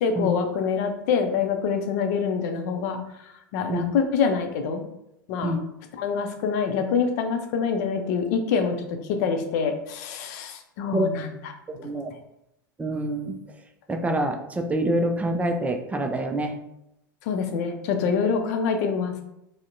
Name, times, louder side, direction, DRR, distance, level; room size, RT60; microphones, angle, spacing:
voice 1, 0.0-3.0 3.5-4.8 5.3-5.6 5.9-8.8 9.1-11.5 17.3-19.1, left 6 dB, 55° left, 5 dB, 0.6 m, -25 dB
voice 2, 11.8-12.1 12.8-13.4 13.9-16.5, right 1 dB, 10° right, 4 dB, 0.5 m, -26 dB
5.0 x 2.1 x 2.5 m, 0.82 s
figure-of-eight pair, 85°, 11 cm